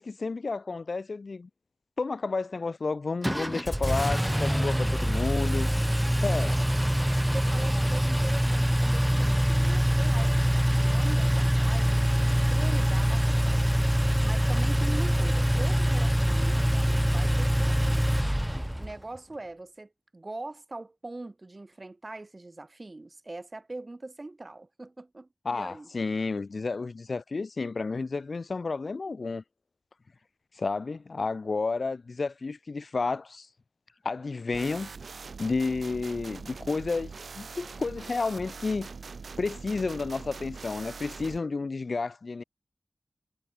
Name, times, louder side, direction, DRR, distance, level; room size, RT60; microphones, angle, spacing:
voice 1, 0.0-1.5 2.0-5.7 6.2-6.5 25.5-29.4 30.6-33.5 34.0-34.9 35.4-38.9 39.4-42.4, left 4 dB, 55° left, 1.9 m, -31 dB
Engine, 3.2-18.9, equal, 5° right, 0.4 m, -24 dB
voice 2, 7.3-18.3 18.8-25.9, right 2 dB, 30° right, 5.2 m, -42 dB
sound 1, 34.5-41.4, right 4 dB, 75° right, 4.6 m, -42 dB
wide cardioid pair, 100°, 0 cm